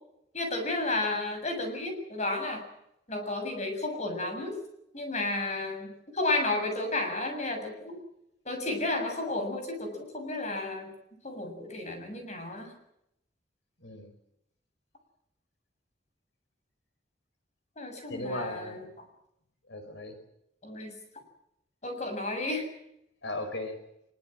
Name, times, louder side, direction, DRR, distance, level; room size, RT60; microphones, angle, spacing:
voice 1, 0.3-2.6 3.1-4.5 4.9-5.9 6.1-8.0 8.5-10.9 11.2-12.7 17.8-18.9 20.6-20.9 21.8-22.7, left 2 dB, 40° left, 5 dB, 7.1 m, -32 dB
voice 2, 13.8-14.1 18.1-18.8 19.7-20.2 23.2-23.8, left 1 dB, 75° left, 7 dB, 5.2 m, -36 dB
23.5 x 22.5 x 7.7 m, 0.80 s
head